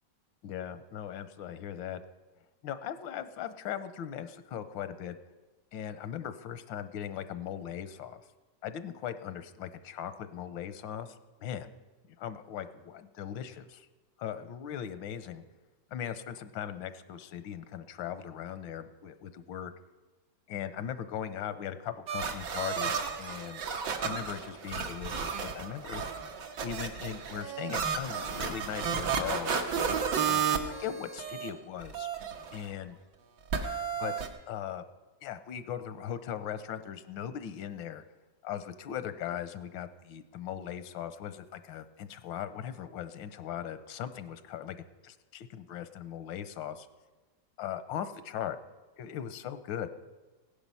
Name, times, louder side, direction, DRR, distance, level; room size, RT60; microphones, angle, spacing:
voice 1, 0.4-2.0 2.6-5.2 5.7-8.2 8.6-11.7 12.1-13.9 14.2-15.4 15.9-19.7 20.5-23.6 24.0-26.0 26.6-29.5 30.3-32.1 32.5-33.0 34.0-34.1 34.5-34.8 35.2-38.0 38.4-44.8 45.0-46.9 47.6-48.6 49.0-49.9, left 9 dB, 85° left, 12 dB, 1.5 m, -39 dB
sound 1, 22.1-31.5 31.8-32.7 33.5-34.3, right 6 dB, 70° right, 1.7 m, -33 dB
16.0 x 10.5 x 5.5 m, 1.2 s
omnidirectional pair, 2.1 m